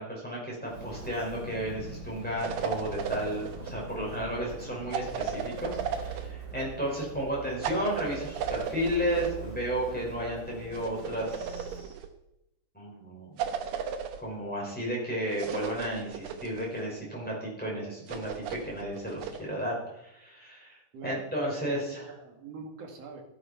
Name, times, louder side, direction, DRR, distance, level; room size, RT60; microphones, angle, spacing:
voice 1, 0.0-11.9 12.7-13.3 14.2-20.8 21.0-22.1, equal, ahead, -5 dB, 5.4 m, -33 dB
Walk footsteps, 0.6-11.9, right 3 dB, 30° right, 5.0 m, -43 dB
sound 1, 2.4-3.8 4.9-6.3 7.6-9.3 10.7-12.1 13.4-14.2 15.3-16.8 18.1-19.4, right 7 dB, 85° right, 2.8 m, -35 dB
voice 2, 21.6-23.2, right 4 dB, 50° right, 2 dB, 2.8 m, -44 dB
13.5 x 11.0 x 4.5 m, 0.87 s
omnidirectional pair, 3.9 m